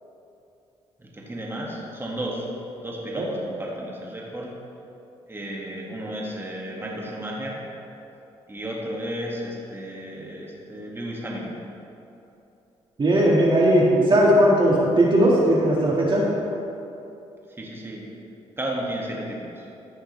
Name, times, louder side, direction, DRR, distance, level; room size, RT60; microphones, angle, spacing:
voice 1, 1.0-2.5 2.8-4.5 5.3-7.6 8.5-11.6 17.6-18.0 18.6-19.6, right 1 dB, 20° right, -4 dB, 2.2 m, -33 dB
voice 2, 13.0-16.2, right 1 dB, 40° right, -4 dB, 2.0 m, -18 dB
15.0 x 6.3 x 3.4 m, 2.9 s
supercardioid pair, 60°, 13 cm